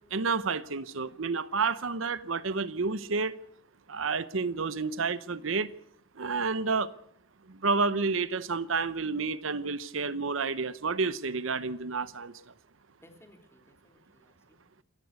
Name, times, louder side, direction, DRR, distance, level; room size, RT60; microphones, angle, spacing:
voice 1, 0.1-3.3 3.9-5.7 6.2-6.9 7.5-12.3, right 4 dB, 75° right, 0.8 m, -30 dB
voice 2, 13.0-14.8, left 1 dB, 15° left, 3.4 m, -60 dB
28.0 x 14.5 x 8.2 m
head